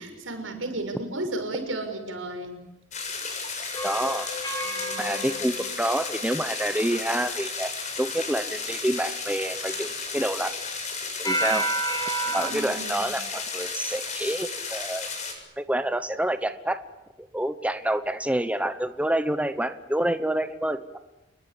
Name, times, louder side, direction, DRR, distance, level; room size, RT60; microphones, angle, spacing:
voice 1, 0.0-2.6 4.6-5.5 12.2-13.1, right 2 dB, 85° right, 6 dB, 6.3 m, -34 dB
sound 1, 2.9-15.3, left 4 dB, 40° left, 7.3 m, -33 dB
sound 2, 3.7-6.6 11.2-12.5, right 1 dB, 20° left, 7.8 m, -30 dB
voice 2, 3.8-4.3 5.0-7.7 8.0-10.6 11.2-11.7 12.3-15.1 15.6-16.8 17.3-21.0, right 1 dB, 5° right, 10 dB, 0.9 m, -28 dB
28.5 x 21.5 x 8.6 m, 0.99 s
head